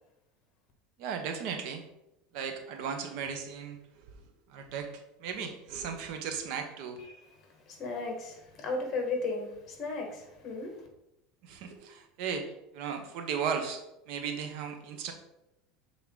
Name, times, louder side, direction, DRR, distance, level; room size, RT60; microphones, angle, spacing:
voice 1, 1.0-1.8 2.3-4.1 4.5-4.9 5.2-7.0 11.4-12.5 12.7-15.1, right 6 dB, 60° right, 0.9 m, -36 dB
voice 2, 7.1-10.9, left 3 dB, 35° left, 1.5 m, -36 dB
7.1 x 3.7 x 3.8 m
supercardioid pair, 150°, 0 cm